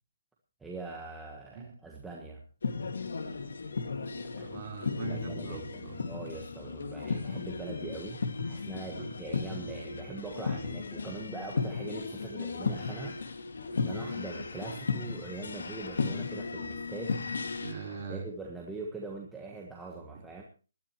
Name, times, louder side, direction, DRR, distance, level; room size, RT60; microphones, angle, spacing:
voice 1, 0.6-2.4 4.4-4.6 5.0-13.2 13.8-17.2 18.1-20.4, right 3 dB, 5° right, -1 dB, 1.4 m, -42 dB
sound 1, 2.6-17.7, left 4 dB, 70° left, 2.2 m, -35 dB
voice 2, 4.3-6.0 9.0-9.1 17.6-18.3 19.5-19.6 20.1-20.4, right 5 dB, 25° right, 0 dB, 4.0 m, -41 dB
Breathing, 12.7-18.2, left 3 dB, 85° left, 3.8 m, -51 dB
20.0 x 12.5 x 3.1 m, 0.36 s
hypercardioid pair, 170°, 0 cm